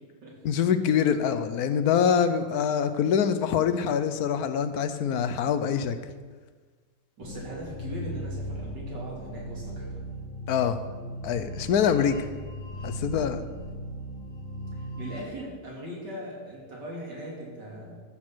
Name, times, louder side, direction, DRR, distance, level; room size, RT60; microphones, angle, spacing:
voice 1, 0.4-6.0 10.5-10.8 11.2-12.2 12.8-13.4, left 7 dB, 65° left, 10 dB, 1.1 m, -24 dB
sound 1, 7.2-15.2, right 1 dB, 15° left, 2.9 m, -38 dB
voice 2, 7.2-10.0 15.0-18.0, equal, 65° right, -3 dB, 3.4 m, -39 dB
13.5 x 6.4 x 6.2 m, 1.5 s
omnidirectional pair, 2.0 m